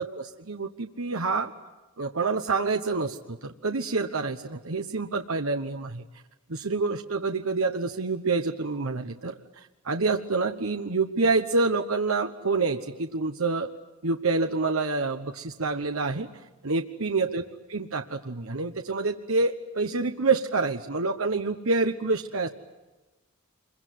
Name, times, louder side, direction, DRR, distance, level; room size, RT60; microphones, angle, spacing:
voice 1, 0.0-1.5 2.0-6.0 6.5-13.7 14.0-16.3 16.6-17.4 17.7-22.5, right 3 dB, 75° right, 6 dB, 1.2 m, -27 dB
26.0 x 23.0 x 9.5 m, 1.1 s
head